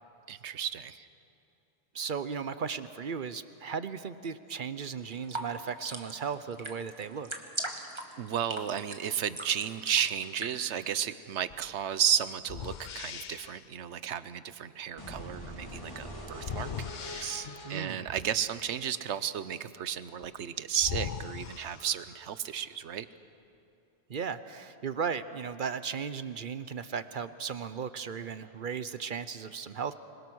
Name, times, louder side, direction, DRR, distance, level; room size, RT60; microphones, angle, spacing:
voice 1, 0.3-1.1 8.2-23.1, right 9 dB, 90° right, 14 dB, 1.1 m, -33 dB
voice 2, 1.9-7.3 17.6-18.0 24.1-30.0, right 6 dB, 55° right, 13 dB, 0.8 m, -36 dB
sound 1, 5.0-10.6, right 2 dB, 25° right, 1.6 m, -40 dB
sound 2, 11.5-11.7 12.4-13.7 16.3-17.9 20.2-20.3 20.8-22.4, left 8 dB, 50° left, 0.7 m, -40 dB
sound 3, 15.0-18.9, equal, 30° left, 3.5 m, -44 dB
26.0 x 21.5 x 6.3 m, 2.8 s
omnidirectional pair, 1.1 m